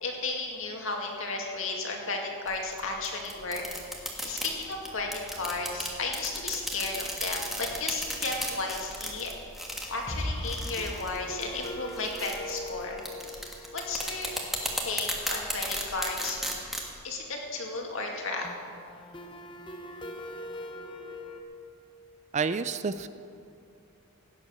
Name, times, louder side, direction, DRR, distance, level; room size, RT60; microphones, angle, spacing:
voice 1, 0.0-3.6 4.2-9.3 9.9-13.0 13.7-14.3 14.8-16.4 17.0-18.5, left 3 dB, 60° left, 1 dB, 2.2 m, -34 dB
sound 1, 2.5-16.9, equal, ahead, 1.5 m, -35 dB
sound 2, 4.2-5.4 5.7-5.8 6.1-6.2 10.1-15.7 18.4-21.4, left 1 dB, 20° left, 0.9 m, -41 dB
voice 2, 22.3-23.1, right 5 dB, 30° right, 12 dB, 0.4 m, -29 dB
16.5 x 9.6 x 6.5 m, 2.5 s
head